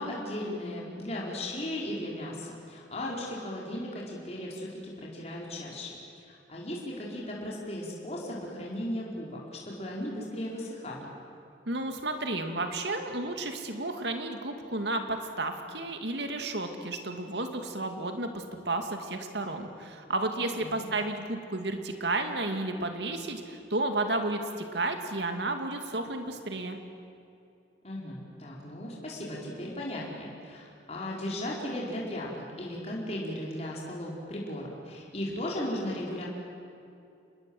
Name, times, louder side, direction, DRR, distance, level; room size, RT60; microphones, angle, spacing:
voice 1, 0.0-11.1 20.6-20.9 27.8-36.2, left 1 dB, 35° left, -4 dB, 4.6 m, -36 dB
voice 2, 11.7-26.8, right 2 dB, 70° right, 5 dB, 2.5 m, -32 dB
28.0 x 21.0 x 7.9 m, 2.6 s
head